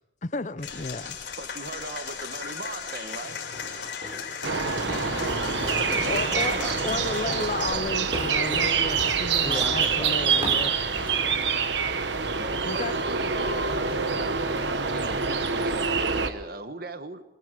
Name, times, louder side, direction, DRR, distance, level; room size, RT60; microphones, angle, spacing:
voice 1, 0.2-1.2 6.1-6.5 6.8-10.8 12.7-12.9, left 3 dB, 40° left, 0.7 m, -32 dB
Applause / Crowd, 0.6-7.7, left 6 dB, 75° left, 4.3 m, -36 dB
voice 2, 1.4-3.4 5.6-6.8 8.0-8.1 12.4-17.2, right 2 dB, 55° right, 1.2 m, -39 dB
Walk footsteps, 3.5-11.3, equal, 30° right, 3.8 m, -39 dB
sound 1, 4.4-16.3, right 5 dB, 75° right, 1.2 m, -26 dB
voice 3, 4.7-7.5 9.4-11.5, equal, 5° left, 1.2 m, -40 dB
24.0 x 19.0 x 6.7 m
head